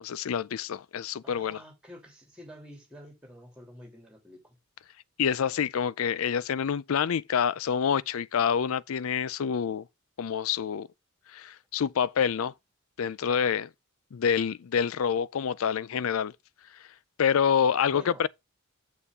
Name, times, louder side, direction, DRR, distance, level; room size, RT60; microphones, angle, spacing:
voice 1, 0.0-1.6 5.2-9.9 10.2-10.9 11.3-12.5 13.0-13.7 14.1-16.3 17.2-18.3, left 7 dB, 70° left, 0.4 m, -27 dB
voice 2, 1.2-4.6 17.9-18.2, equal, 5° right, 3.3 m, -48 dB
6.9 x 6.9 x 3.6 m
head